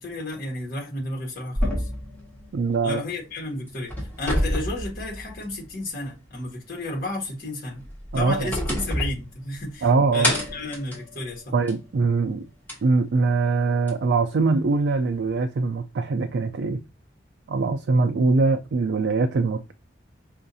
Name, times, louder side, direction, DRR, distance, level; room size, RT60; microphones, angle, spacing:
voice 1, 0.0-1.9 2.8-7.9 8.1-11.5, left 2 dB, 55° left, 1.5 m, -32 dB
sound 1, 1.6-3.3 3.7-5.7 6.0-6.1 7.7-9.8 10.2-11.9 12.7-12.8 13.9-14.0, equal, 10° left, 1.4 m, -29 dB
voice 2, 2.5-3.0 8.1-8.5 9.8-10.3 11.5-12.5 12.8-16.8 17.5-19.7, right 4 dB, 70° right, 0.4 m, -22 dB
5.4 x 2.5 x 2.6 m
head